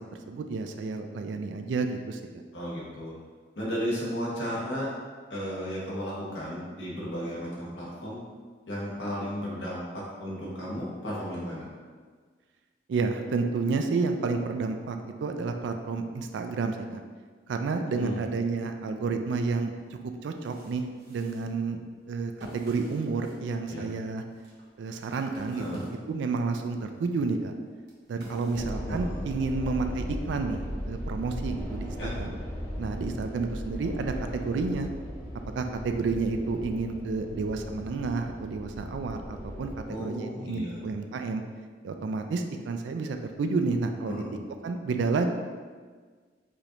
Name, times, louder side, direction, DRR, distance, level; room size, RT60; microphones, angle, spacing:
voice 1, 0.3-2.2 12.9-17.0 17.5-21.8 22.1-24.2 24.8-27.5 28.1-32.3 32.8-34.9 35.6-41.4 41.8-44.2 44.6-45.3, right 4 dB, 80° right, 6 dB, 0.3 m, -30 dB
voice 2, 2.5-3.1 3.5-4.9 5.3-8.2 8.7-11.7 17.9-18.2 23.7-23.9 25.5-25.8 28.3-29.2 32.0-32.2 39.9-40.8 44.1-44.3, equal, 80° left, -6 dB, 1.2 m, -34 dB
sound 1, 20.1-26.5 26.9-29.5, equal, 60° right, 1.0 m, -52 dB
sound 2, 28.5-39.8, equal, 15° left, 0.6 m, -37 dB
4.9 x 2.5 x 2.9 m, 1.5 s
head